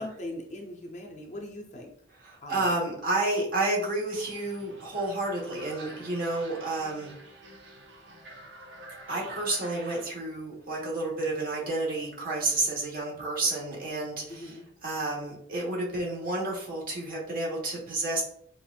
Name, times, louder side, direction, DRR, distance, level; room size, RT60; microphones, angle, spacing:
voice 1, 0.0-1.9 2.4-2.8 14.3-14.6, left 1 dB, 35° left, 1 dB, 0.6 m, -40 dB
voice 2, 2.2-7.1 9.1-18.2, right 2 dB, 50° right, -3 dB, 1.3 m, -30 dB
sound 1, 4.1-10.0, right 1 dB, 65° right, 0.7 m, -48 dB
5.6 x 2.5 x 2.4 m, 0.65 s
head